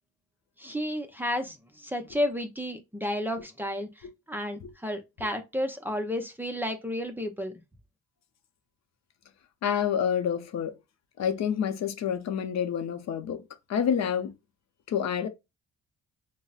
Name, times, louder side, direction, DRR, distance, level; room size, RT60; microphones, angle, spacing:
voice 1, 0.6-3.9 4.3-7.5, left 1 dB, 5° right, 0.6 m, -32 dB
voice 2, 9.6-10.7 11.2-13.4 13.7-14.3 14.9-15.3, left 8 dB, 60° left, 0.6 m, -28 dB
3.9 x 2.1 x 2.4 m
cardioid pair, 90°, 30 cm